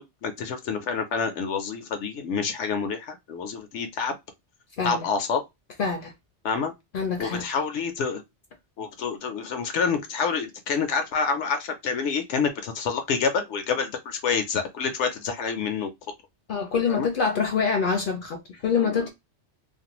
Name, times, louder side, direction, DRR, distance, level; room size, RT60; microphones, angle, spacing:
voice 1, 0.0-4.2 4.8-5.4 6.4-6.7 7.2-8.2 8.8-15.9 16.9-17.1 18.8-19.1, left 5 dB, 80° left, 0.9 m, -28 dB
voice 2, 5.8-6.1 6.9-7.4 16.5-19.1, left 5 dB, 60° left, 0.6 m, -25 dB
2.5 x 2.1 x 2.9 m
omnidirectional pair, 1.2 m